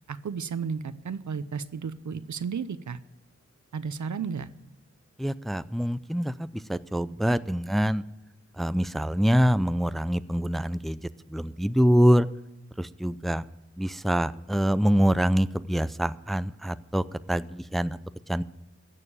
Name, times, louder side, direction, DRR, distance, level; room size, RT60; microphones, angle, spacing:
voice 1, 0.1-3.0 3.7-4.5, right 6 dB, 85° right, 14 dB, 0.7 m, -33 dB
voice 2, 5.2-8.0 8.6-11.0 11.3-12.3 12.8-13.4 13.8-18.0 18.3-18.4, equal, ahead, 15 dB, 0.4 m, -25 dB
15.5 x 6.7 x 8.7 m, 0.94 s
wide cardioid pair, 60°, 29 cm